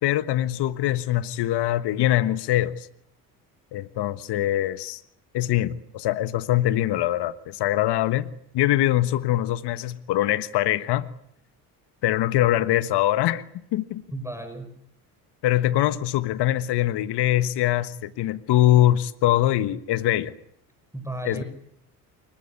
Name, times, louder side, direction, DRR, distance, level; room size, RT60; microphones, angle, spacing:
voice 1, 0.0-2.9 3.7-5.0 5.3-11.1 12.0-13.4 13.7-14.0 15.4-20.3 21.2-21.4, left 14 dB, 60° left, 13 dB, 1.5 m, -23 dB
voice 2, 14.1-14.7 20.9-21.4, right 1 dB, 5° right, 8 dB, 6.3 m, -33 dB
25.0 x 22.0 x 9.7 m, 0.71 s
hypercardioid pair, 60°, 47 cm